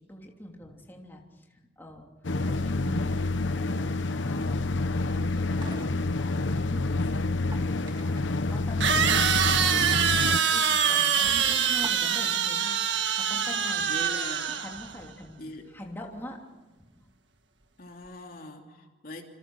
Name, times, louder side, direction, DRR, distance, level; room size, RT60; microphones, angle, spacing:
voice 1, 0.0-2.1 2.5-4.6 5.0-9.3 9.9-10.1 10.5-14.1 14.6-16.4 17.0-17.1, equal, 10° left, 0 dB, 3.1 m, -43 dB
sound 1, 2.2-10.4, left 2 dB, 85° left, 0.9 m, -28 dB
sound 2, 5.1-6.8 7.3-8.4 9.4-9.6 10.0-10.1 10.6-10.7 11.2-12.4, right 1 dB, 25° right, 2.1 m, -46 dB
sound 3, 7.2-7.3 8.8-14.9, right 7 dB, 75° right, 1.7 m, -25 dB
voice 2, 11.5-11.9 13.9-14.6 15.4-15.6 17.8-19.2, left 1 dB, 50° left, 2 dB, 2.9 m, -42 dB
28.0 x 26.5 x 6.4 m, 1.1 s
head